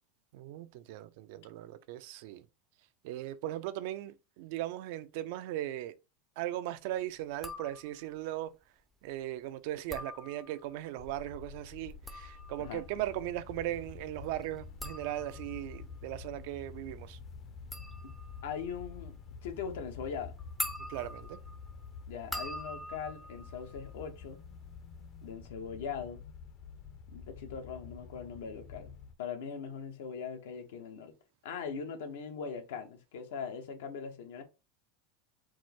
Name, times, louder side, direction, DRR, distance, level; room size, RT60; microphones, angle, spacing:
voice 1, 0.3-2.5 3.0-6.0 6.4-8.5 9.0-17.2 20.9-21.4, right 14 dB, 65° right, 0.4 m, -38 dB
sound 1, 7.3-8.2 9.7-10.8 11.8-24.5 24.8-25.3, left 1 dB, 5° left, 0.5 m, -45 dB
sound 2, 11.0-29.1, left 5 dB, 45° left, 0.7 m, -49 dB
voice 2, 18.4-19.1 19.4-20.4 22.1-24.4 25.2-26.2 27.1-31.1 31.4-34.4, left 6 dB, 85° left, 1.0 m, -40 dB
4.6 x 2.1 x 4.3 m
supercardioid pair, 140°, 0 cm